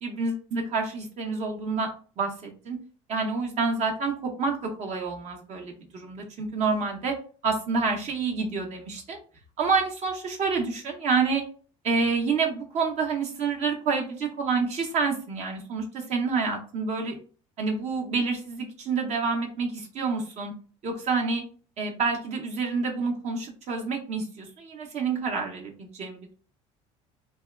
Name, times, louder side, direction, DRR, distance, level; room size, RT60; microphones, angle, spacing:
voice 1, 0.0-1.9 2.2-2.8 3.1-7.1 7.4-9.2 9.6-11.4 11.8-17.2 17.6-20.5 20.8-21.4 21.8-26.3, right 4 dB, 50° right, 1 dB, 0.6 m, -28 dB
2.7 x 2.2 x 2.2 m, 0.40 s
supercardioid pair, 100°, 15 cm